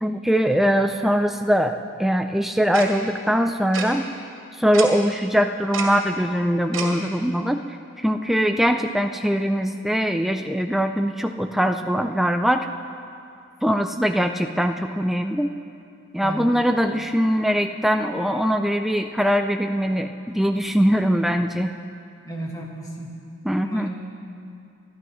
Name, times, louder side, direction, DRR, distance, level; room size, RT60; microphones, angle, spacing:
voice 1, 0.0-4.1 4.6-7.6 8.0-12.7 13.6-15.6 16.1-21.7 23.4-23.9, equal, ahead, 5 dB, 0.3 m, -22 dB
Tick-tock, 2.7-2.9 3.7-3.9 4.7-4.9 5.7-5.9 6.7-6.9, right 5 dB, 75° right, 2.3 m, -28 dB
voice 2, 16.2-16.5 22.2-23.1 23.6-23.9, right 1 dB, 15° left, -2 dB, 1.7 m, -33 dB
25.5 x 11.5 x 3.1 m, 2.5 s
head